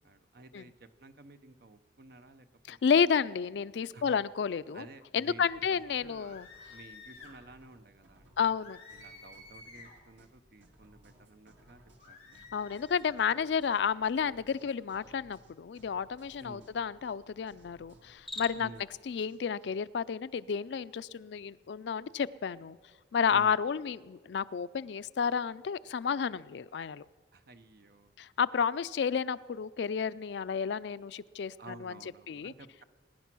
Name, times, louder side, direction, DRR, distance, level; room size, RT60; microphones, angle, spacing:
voice 1, 0.0-3.1 3.9-4.2 4.7-8.5 8.9-12.4 16.4-16.7 18.5-18.9 23.3-23.6 27.3-28.1 31.6-32.8, right 3 dB, 55° right, 10 dB, 0.8 m, -53 dB
voice 2, 2.7-4.8 5.1-6.5 8.4-8.8 12.5-18.7 19.1-22.8 23.1-27.1 28.2-31.9 32.3-32.5, left 6 dB, 65° left, 17 dB, 0.4 m, -31 dB
sound 1, 5.5-19.7, equal, 80° right, 2.1 m, -62 dB
sound 2, 6.2-7.4 8.6-10.0 12.0-13.2, left 3 dB, 35° left, 3.5 m, -52 dB
Cricket, 18.1-18.9, left 2 dB, ahead, 0.9 m, -42 dB
21.5 x 10.0 x 6.1 m, 1.5 s
head